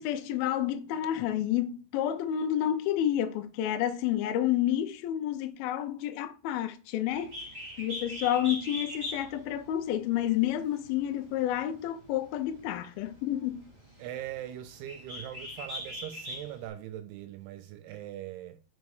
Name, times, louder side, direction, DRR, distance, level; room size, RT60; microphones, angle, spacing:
voice 1, 0.0-7.3 7.8-13.6, left 11 dB, 80° left, 2.2 m, -30 dB
Bird, 7.1-16.7, left 1 dB, 40° right, 0.9 m, -42 dB
voice 2, 14.0-18.6, right 12 dB, 85° right, 2.4 m, -41 dB
5.3 x 5.0 x 4.7 m
omnidirectional pair, 5.0 m